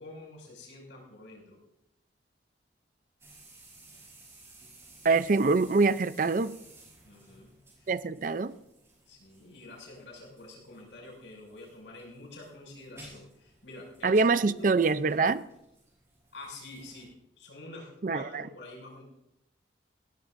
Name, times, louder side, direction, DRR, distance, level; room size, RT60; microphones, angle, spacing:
voice 1, 0.0-1.6 7.0-8.0 9.1-14.7 16.3-17.1 17.4-19.0, left 2 dB, 80° left, 6.1 m, -47 dB
sound 1, 3.2-17.1, right 2 dB, 15° right, 5.6 m, -56 dB
voice 2, 5.0-6.5 7.9-8.5 14.0-15.4 18.0-18.5, right 4 dB, 45° right, 0.4 m, -25 dB
20.5 x 17.0 x 2.6 m
head